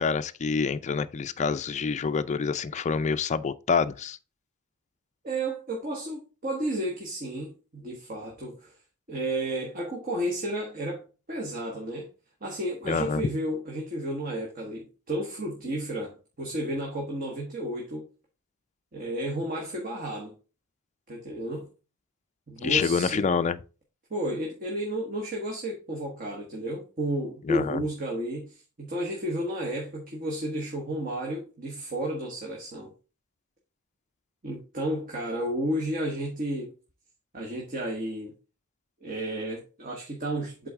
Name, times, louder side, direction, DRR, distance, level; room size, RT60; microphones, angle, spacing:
voice 1, 0.0-4.2 12.9-13.2 22.6-23.6 27.5-27.8, left 5 dB, 35° left, 0.4 m, -27 dB
voice 2, 5.2-8.7 9.1-12.1 12.4-18.1 18.9-20.3 21.1-21.7 22.5-23.3 24.1-32.9 34.4-36.7 37.3-38.3 39.0-40.7, right 1 dB, 40° right, 1.3 m, -32 dB
7.9 x 3.9 x 3.6 m
head